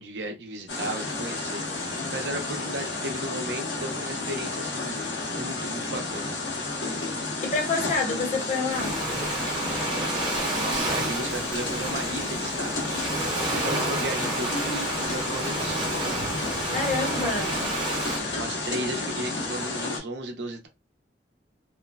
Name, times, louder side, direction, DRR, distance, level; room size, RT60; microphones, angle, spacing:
voice 1, 0.0-6.3 10.5-15.9 16.9-17.7 18.1-20.7, right 1 dB, 70° right, 0.6 m, -35 dB
sound 1, 0.7-20.0, left 3 dB, 85° left, 0.9 m, -31 dB
voice 2, 7.4-8.9 16.7-17.5 18.2-18.4, left 3 dB, 40° left, 0.8 m, -28 dB
Ocean, 8.7-18.2, right 2 dB, 25° right, 0.6 m, -31 dB
3.1 x 2.1 x 2.2 m
head